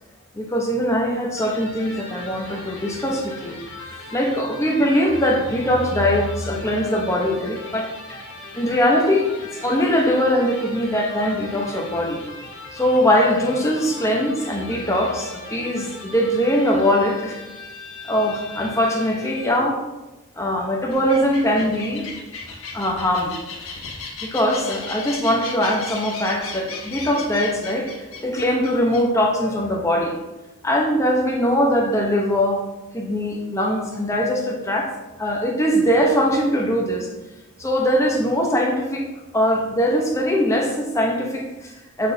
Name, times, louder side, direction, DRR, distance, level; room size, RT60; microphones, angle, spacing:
voice 1, 0.3-8.2 8.5-9.3 9.6-12.2 12.7-17.4 18.0-19.8 20.4-22.1 22.7-23.3 24.2-30.2 30.6-32.6 32.9-34.9 35.2-37.1 37.6-39.1 39.3-42.1, equal, 15° left, 0 dB, 0.9 m, -21 dB
Electric guitar, 1.3-19.7, left 2 dB, 60° left, 1.6 m, -39 dB
sound 1, 20.9-29.0, left 4 dB, 90° left, 1.3 m, -36 dB
6.9 x 6.4 x 2.7 m, 1.1 s
head